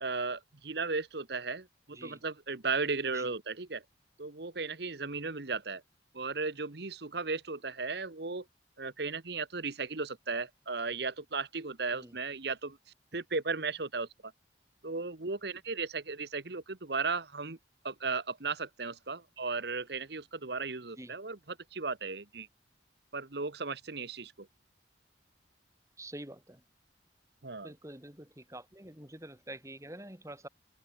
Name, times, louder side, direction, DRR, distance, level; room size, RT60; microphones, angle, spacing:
voice 1, 0.0-3.8 4.2-5.8 6.1-8.4 8.8-12.8 13.1-14.3 14.8-17.6 17.8-22.5 23.1-24.5 27.4-27.7, right 4 dB, 60° right, 1.2 m, -36 dB
voice 2, 1.9-2.2 3.1-3.3 11.9-12.2 21.0-21.1 26.0-26.6 27.6-30.5, right 1 dB, 15° right, 3.6 m, -47 dB
open air
head